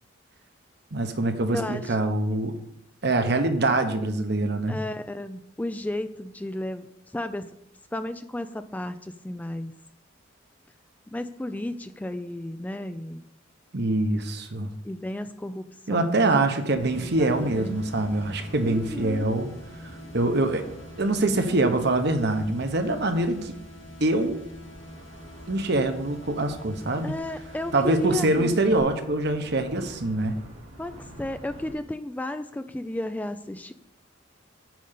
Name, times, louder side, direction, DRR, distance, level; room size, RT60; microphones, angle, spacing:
voice 1, 0.9-2.5 3.0-4.8 13.7-14.7 15.9-19.5 20.1-20.7 21.0-23.5 24.0-24.5 25.5-27.1 27.7-30.4, right 2 dB, 55° right, 7 dB, 1.1 m, -24 dB
voice 2, 1.5-2.0 4.7-6.9 7.1-7.5 7.9-9.7 11.1-13.2 14.8-16.3 17.0-17.8 18.6-19.3 21.2-21.5 27.0-28.6 30.8-30.9 31.2-33.7, left 1 dB, 10° left, 10 dB, 0.3 m, -33 dB
sound 1, 16.7-31.7, equal, 85° right, 2.3 m, -47 dB
sound 2, 16.8-28.8, left 1 dB, 70° left, 2.6 m, -46 dB
9.4 x 5.2 x 6.8 m, 0.79 s
head